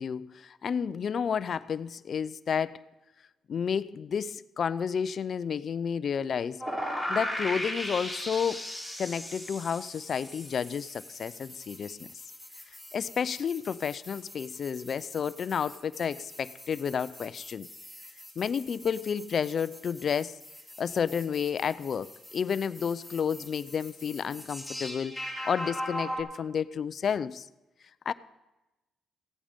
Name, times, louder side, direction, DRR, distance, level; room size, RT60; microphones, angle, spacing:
voice 1, 0.0-2.8 3.5-6.6 7.1-8.6 9.0-12.1 12.9-17.7 18.4-20.4 20.8-27.5 28.1-28.2, left 7 dB, 50° left, 16 dB, 0.4 m, -31 dB
sound 1, 6.6-26.2, equal, 5° right, 3.2 m, -40 dB
15.5 x 8.8 x 5.1 m, 1.0 s
cardioid pair, 90°, 0 cm